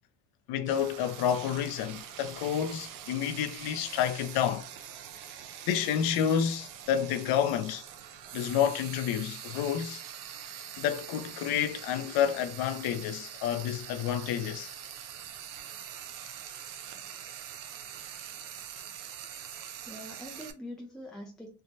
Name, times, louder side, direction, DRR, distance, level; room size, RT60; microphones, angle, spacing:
voice 1, 0.5-4.7 5.7-7.8 8.3-10.0 10.8-14.8, left 9 dB, 60° left, 0.6 m, -29 dB
Frying (food), 0.7-20.5, right 9 dB, 50° right, 0.6 m, -44 dB
voice 2, 15.4-16.4 16.6-16.7 18.6-19.3 19.8-21.6, left 1 dB, ahead, 0.3 m, -47 dB
3.3 x 2.1 x 2.7 m
cardioid pair, 120°, 43 cm